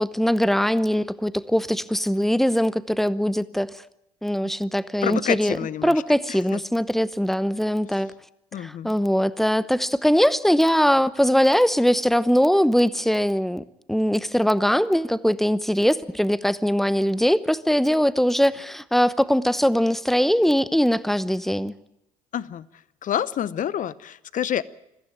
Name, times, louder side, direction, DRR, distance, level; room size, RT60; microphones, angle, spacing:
voice 1, 0.0-3.7 4.2-5.6 5.8-8.1 8.6-21.7, equal, ahead, 16 dB, 0.9 m, -21 dB
voice 2, 5.0-6.0 6.3-6.6 8.5-8.9 22.3-22.7 23.0-24.6, left 10 dB, 45° left, 19 dB, 0.8 m, -28 dB
21.0 x 15.0 x 8.9 m, 0.86 s
hypercardioid pair, 55°, 18 cm